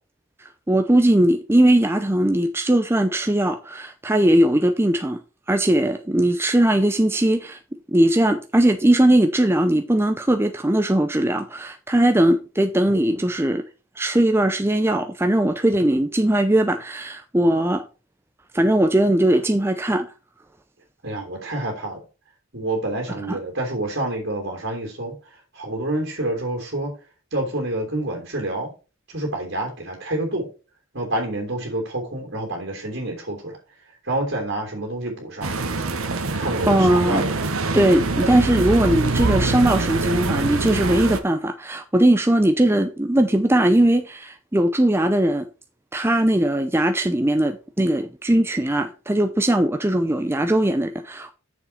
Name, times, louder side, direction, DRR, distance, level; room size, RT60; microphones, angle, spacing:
voice 1, 0.4-5.2 5.5-7.6 7.9-13.7 14.0-17.9 18.5-20.1 23.3-23.4 36.7-37.3 37.7-45.5 45.9-51.3, right 1 dB, 10° right, 0.5 m, -19 dB
voice 2, 21.0-22.0 22.5-25.1 25.5-26.9 27.3-28.7 29.1-30.5 30.9-33.6 34.0-35.5 36.3-37.4, right 1 dB, 50° right, 3.2 m, -27 dB
sound 1, 35.4-41.2, right 3 dB, 70° right, 1.2 m, -24 dB
8.3 x 6.9 x 4.2 m
head